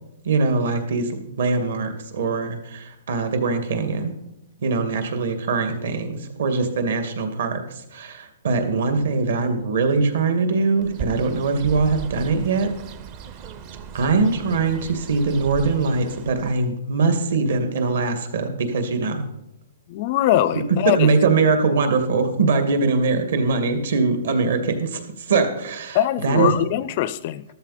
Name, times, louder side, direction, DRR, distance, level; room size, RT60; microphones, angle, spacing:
voice 1, 0.2-4.1 4.6-7.6 7.9-12.7 13.9-19.2 20.5-26.5, right 4 dB, 60° right, 6 dB, 2.2 m, -22 dB
Bird, 10.8-16.7, right 6 dB, 25° right, 0.6 m, -37 dB
voice 2, 19.9-21.1 25.9-27.4, left 13 dB, 30° left, 16 dB, 0.4 m, -22 dB
13.5 x 13.5 x 4.3 m, 0.85 s
hypercardioid pair, 175°, 0 cm